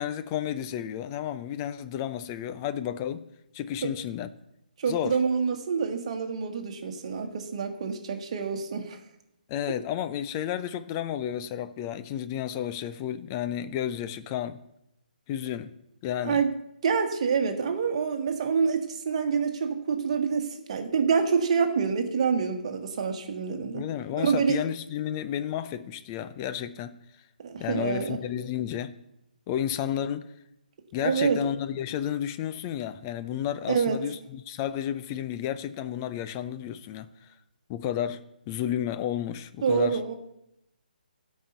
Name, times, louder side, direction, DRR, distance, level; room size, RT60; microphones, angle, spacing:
voice 1, 0.0-3.3 3.5-4.3 4.9-5.2 9.5-14.6 15.3-15.7 16.0-16.4 23.7-27.0 27.6-28.9 29.5-30.3 30.9-37.1 37.7-40.0, left 10 dB, 20° left, 0.5 m, -32 dB
voice 2, 4.8-9.0 16.2-16.5 16.8-23.8 24.2-24.6 27.4-28.2 31.0-31.4 33.7-34.0 39.6-40.1, right 6 dB, 40° right, 1.4 m, -27 dB
12.0 x 5.5 x 7.9 m
figure-of-eight pair, 135°, 5 cm